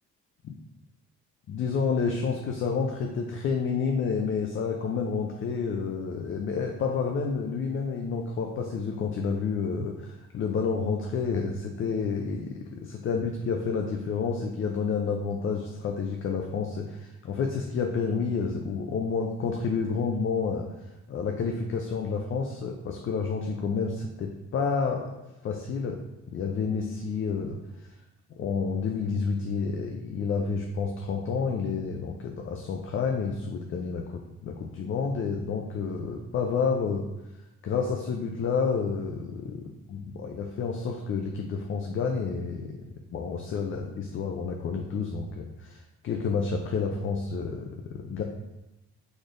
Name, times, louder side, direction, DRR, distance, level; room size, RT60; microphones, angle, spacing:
voice 1, 1.5-20.7 21.1-25.1 25.4-26.0 26.3-27.9 28.3-37.0 37.6-42.8 43.1-48.2, left 5 dB, 45° left, 2 dB, 0.4 m, -29 dB
4.1 x 3.2 x 2.5 m, 0.99 s
cardioid pair, 90°, 30 cm